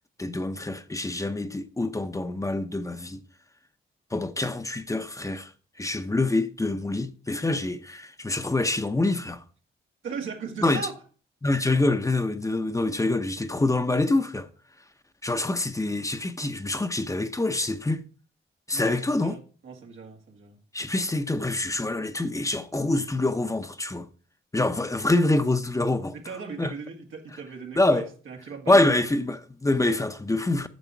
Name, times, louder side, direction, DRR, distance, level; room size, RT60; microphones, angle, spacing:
voice 1, 0.2-3.2 4.1-5.5 5.8-9.4 10.6-10.8 11.4-14.5 15.2-18.0 18.7-19.4 20.7-24.1 24.5-26.2 26.6-26.7 27.8-28.1 28.7-30.7, left 2 dB, 15° left, 0.8 m, -25 dB
voice 2, 10.0-10.9 18.7-20.6 26.1-28.9, right 5 dB, 85° right, 2.0 m, -38 dB
9.5 x 6.9 x 4.5 m
cardioid pair, 85°, 20 cm